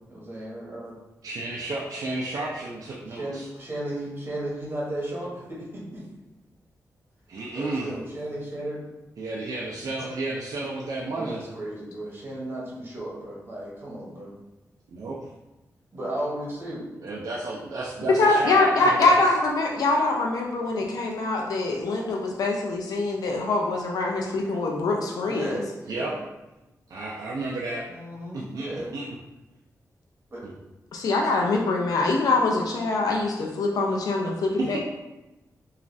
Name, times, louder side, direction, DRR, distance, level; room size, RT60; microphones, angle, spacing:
voice 1, 0.1-1.0 3.1-6.0 7.5-8.8 11.1-14.3 15.9-16.9 25.3-26.2 27.9-28.9 30.3-30.4, right 1 dB, 35° right, -5 dB, 1.0 m, -34 dB
voice 2, 1.2-3.5 7.3-7.9 9.2-11.4 14.9-15.2 17.0-19.2 25.9-26.1 26.9-27.9 28.3-29.1 30.4-30.5 34.6-34.8, right 2 dB, 70° right, -4 dB, 0.4 m, -32 dB
voice 3, 18.2-25.6 30.9-34.8, left 3 dB, 80° left, 0 dB, 0.4 m, -24 dB
3.0 x 2.4 x 2.6 m, 1.0 s
wide cardioid pair, 90°, 6 cm